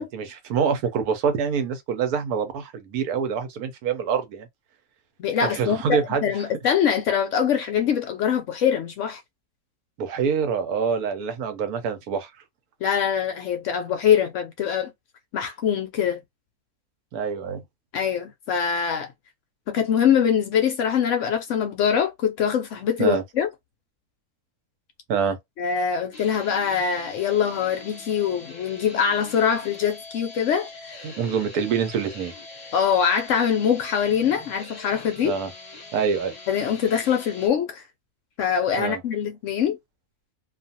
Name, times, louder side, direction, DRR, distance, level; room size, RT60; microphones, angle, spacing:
voice 1, 0.0-4.5 5.4-6.2 10.0-12.3 17.1-17.6 23.0-23.2 25.1-25.4 31.0-32.3 35.2-35.5 35.9-36.3 38.8-39.0, right 6 dB, 80° right, 1.2 m, -25 dB
voice 2, 5.2-9.2 12.8-14.9 15.3-16.2 17.9-19.1 19.7-23.5 25.6-31.0 32.7-35.3 36.5-37.8 38.4-39.8, left 8 dB, 65° left, 0.8 m, -23 dB
sound 1, 26.1-37.5, left 3 dB, 35° left, 1.0 m, -43 dB
2.5 x 2.4 x 2.7 m
omnidirectional pair, 1.6 m